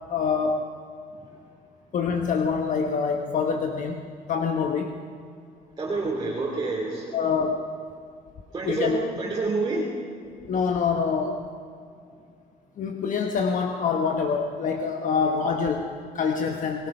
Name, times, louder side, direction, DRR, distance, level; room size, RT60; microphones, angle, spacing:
voice 1, 0.1-0.7 1.9-5.0 7.1-7.7 8.6-9.0 10.5-11.4 12.8-16.9, left 5 dB, 50° left, 4 dB, 1.3 m, -26 dB
voice 2, 5.8-7.2 8.5-9.9, right 3 dB, 25° right, -3 dB, 2.9 m, -28 dB
29.5 x 18.5 x 5.6 m, 2.3 s
cardioid pair, 110°, 17 cm